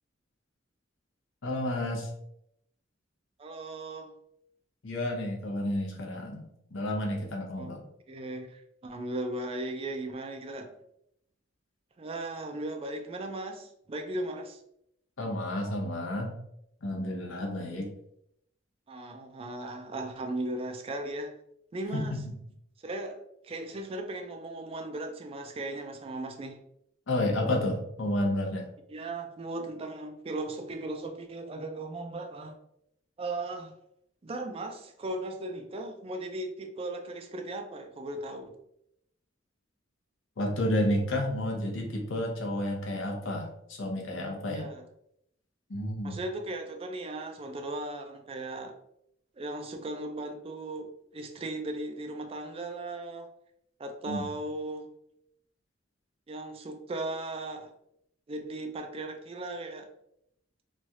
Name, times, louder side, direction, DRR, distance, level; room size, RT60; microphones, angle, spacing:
voice 1, 1.4-2.1 4.8-6.4 6.7-7.8 15.2-16.3 16.8-17.9 21.9-22.2 27.1-28.7 40.4-44.7 45.7-46.2 54.1-54.3, left 1 dB, 75° left, 0 dB, 0.7 m, -31 dB
voice 2, 3.4-4.1 7.5-7.7 8.1-10.7 12.0-14.6 18.9-21.3 21.7-22.2 22.8-23.2 23.4-26.6 28.9-32.6 33.2-33.7 34.2-38.5 44.5-44.8 46.0-48.7 49.3-53.3 53.8-54.9 56.3-57.7 58.3-59.9, right 2 dB, 30° right, 5 dB, 0.3 m, -37 dB
3.1 x 2.3 x 2.7 m, 0.76 s
head